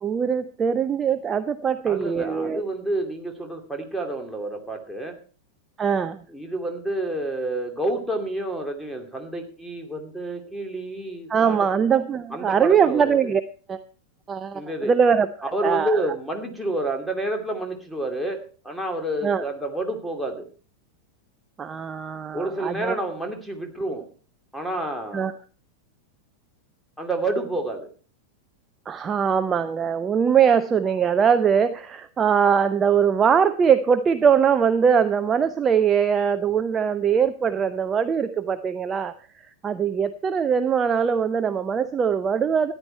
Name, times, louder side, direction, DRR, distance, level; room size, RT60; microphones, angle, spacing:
voice 1, 0.0-2.6 5.8-6.2 11.3-13.4 13.7-13.8 14.3-16.1 19.2-19.4 21.6-22.9 25.1-25.3 28.9-42.7, right 7 dB, 20° right, 11 dB, 0.6 m, -22 dB
voice 2, 1.9-5.2 6.3-11.6 12.3-13.3 14.5-14.9 15.5-20.5 22.3-24.1 24.5-25.3 27.0-27.9, right 1 dB, ahead, 3 dB, 2.6 m, -29 dB
14.0 x 10.5 x 4.5 m, 0.40 s
figure-of-eight pair, 90°, 0 cm